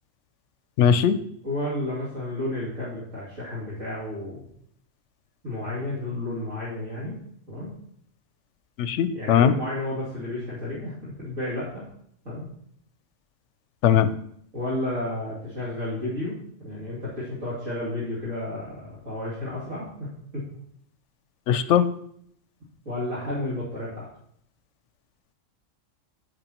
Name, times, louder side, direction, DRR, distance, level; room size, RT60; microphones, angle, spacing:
voice 1, 0.8-1.2 8.8-9.5 13.8-14.1 21.5-21.9, left 9 dB, 70° left, 12 dB, 0.9 m, -19 dB
voice 2, 1.4-4.5 5.4-7.2 7.5-7.7 9.1-11.8 12.2-12.4 14.5-20.1 20.3-20.4 22.8-24.1, left 1 dB, 70° right, -10 dB, 3.1 m, -32 dB
10.5 x 9.2 x 3.0 m, 0.68 s
omnidirectional pair, 1.3 m